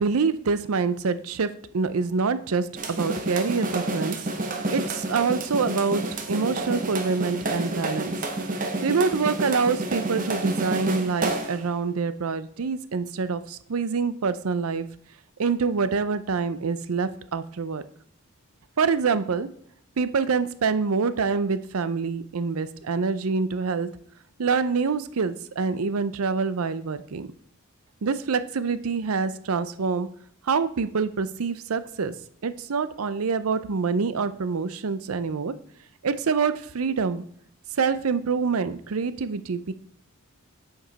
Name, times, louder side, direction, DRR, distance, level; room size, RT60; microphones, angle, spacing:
voice 1, 0.0-4.2 4.7-6.0 6.3-8.1 8.8-14.9 15.4-17.8 18.8-19.5 20.0-23.9 24.4-27.3 28.0-30.1 30.4-32.1 32.4-35.5 36.0-37.2 37.8-39.7, right 5 dB, 85° right, 13 dB, 0.6 m, -26 dB
sound 1, 2.8-11.7, right 2 dB, 40° right, 0.9 m, -29 dB
8.8 x 5.3 x 4.0 m, 0.65 s
head